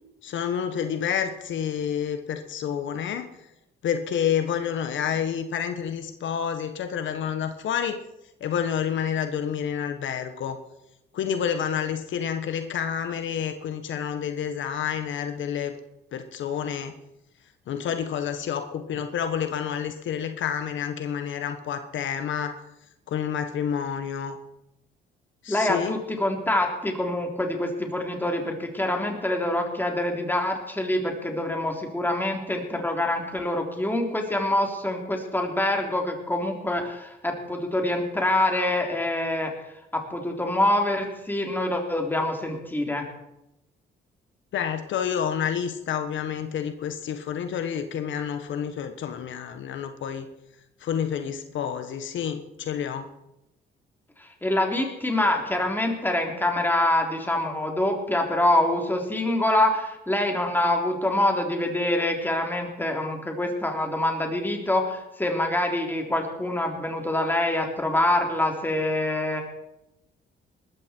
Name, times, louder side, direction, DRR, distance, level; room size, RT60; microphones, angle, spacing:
voice 1, 0.2-3.3 3.8-8.0 8.4-10.6 11.1-15.7 16.1-16.9 17.7-22.5 23.1-24.4 25.4-26.0 44.5-50.3 50.8-53.1, left 8 dB, 70° left, 8 dB, 1.4 m, -29 dB
voice 2, 25.5-39.5 39.9-43.1 54.2-69.4, left 1 dB, 10° left, 2 dB, 3.7 m, -25 dB
20.0 x 14.0 x 4.6 m, 0.87 s
cardioid pair, 90°, 20 cm